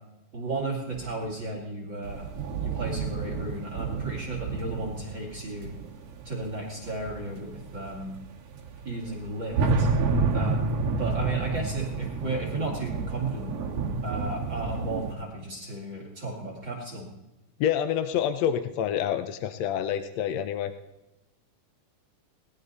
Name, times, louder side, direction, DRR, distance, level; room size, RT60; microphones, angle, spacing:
voice 1, 0.3-2.3 2.6-5.7 6.2-8.2 8.8-9.9 10.3-13.5 14.0-17.1, right 2 dB, 40° right, 0 dB, 2.7 m, -34 dB
sound 1, 0.9-1.4 2.0-15.1, right 4 dB, 55° right, 2.5 m, -30 dB
voice 2, 17.6-20.7, left 9 dB, 75° left, 10 dB, 1.6 m, -27 dB
19.5 x 12.0 x 4.0 m, 1.0 s
omnidirectional pair, 3.7 m